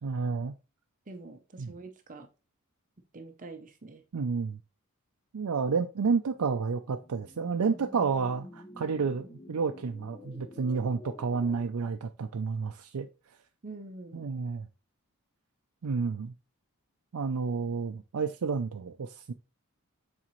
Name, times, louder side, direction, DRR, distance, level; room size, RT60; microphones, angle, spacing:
voice 1, 0.0-0.6 1.6-1.7 4.1-4.6 5.3-13.1 14.1-14.7 15.8-16.3 17.1-19.3, right 5 dB, 80° right, 0.5 m, -30 dB
voice 2, 1.1-2.3 3.1-4.0 13.6-14.3, right 3 dB, 35° right, 0.7 m, -45 dB
sound 1, 6.2-11.7, left 1 dB, 20° left, 0.7 m, -50 dB
7.4 x 4.1 x 3.1 m
head